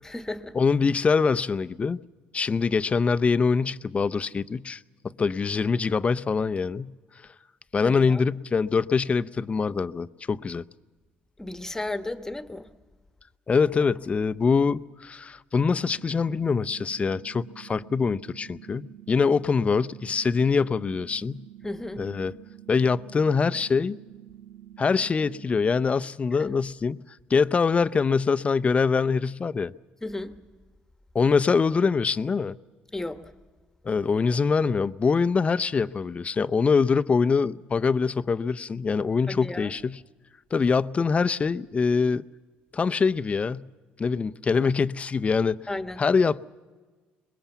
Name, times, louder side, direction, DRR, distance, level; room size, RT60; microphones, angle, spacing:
voice 1, 0.0-0.6 7.8-8.2 11.4-12.7 21.6-22.1 26.3-26.5 30.0-30.4 32.9-33.3 39.3-39.7 45.7-46.0, left 2 dB, 10° left, 1.2 m, -34 dB
voice 2, 0.5-2.0 2.3-7.0 7.7-10.6 13.5-21.5 22.0-22.3 22.7-24.0 24.8-27.0 27.3-29.7 31.1-32.6 33.8-40.0 40.5-42.2 42.7-43.7 44.0-45.7 46.0-46.4, left 5 dB, 30° left, 0.6 m, -24 dB
sound 1, 15.6-25.6, right 12 dB, 70° right, 1.2 m, -48 dB
23.5 x 21.0 x 7.1 m
supercardioid pair, 80°, 4 cm